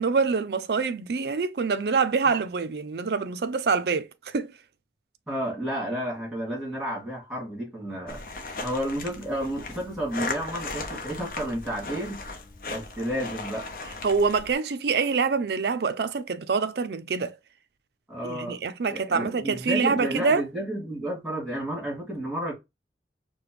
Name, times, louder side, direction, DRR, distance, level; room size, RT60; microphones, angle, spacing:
voice 1, 0.0-4.5 14.0-17.4 18.2-20.4, right 5 dB, 65° right, 0.4 m, -25 dB
voice 2, 5.3-8.2 8.6-12.2 12.7-13.7 18.1-18.6 18.9-22.5, equal, ahead, 2.4 m, -31 dB
sound 1, 8.1-14.5, left 3 dB, 50° left, 0.8 m, -37 dB
4.9 x 2.2 x 3.1 m
head